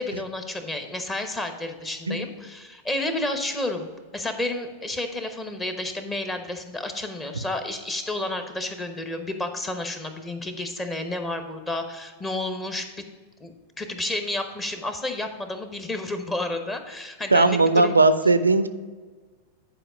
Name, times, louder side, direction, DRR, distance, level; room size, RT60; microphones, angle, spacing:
voice 1, 0.0-12.9 13.4-18.0, left 2 dB, 15° left, 7 dB, 1.0 m, -31 dB
voice 2, 17.3-18.7, right 3 dB, 80° right, 12 dB, 0.5 m, -18 dB
10.0 x 4.8 x 5.0 m, 1.4 s
figure-of-eight pair, 90°, 0 cm